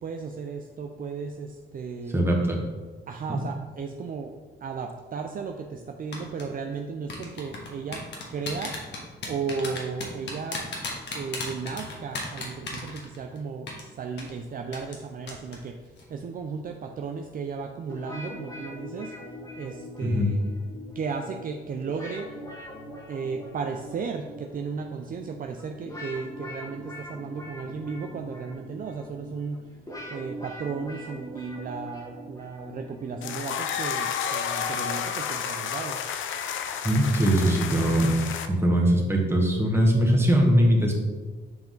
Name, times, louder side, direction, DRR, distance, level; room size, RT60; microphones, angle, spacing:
voice 1, 0.0-2.2 3.1-4.3 4.6-8.0 8.3-8.7 9.2-10.7 11.1-15.8 16.1-19.1 19.5-20.4 20.9-22.4 23.1-29.6 30.1-36.0, right 5 dB, 45° right, 4 dB, 0.5 m, -35 dB
voice 2, 2.1-2.6 3.3-3.4 20.0-20.3 36.7-38.1 38.5-40.9, equal, 10° right, -1 dB, 1.6 m, -21 dB
sound 1, 6.1-6.4 7.1-13.4 13.7-13.8 14.2-14.3 14.7-15.0 15.3-15.6 15.9-16.0, left 4 dB, 60° left, 1.6 m, -34 dB
sound 2, 17.9-33.8, equal, 20° left, 1.8 m, -42 dB
sound 3, 33.2-38.5, left 8 dB, 75° left, 0.6 m, -31 dB
7.5 x 4.7 x 3.9 m, 1.4 s
cardioid pair, 90°, 20 cm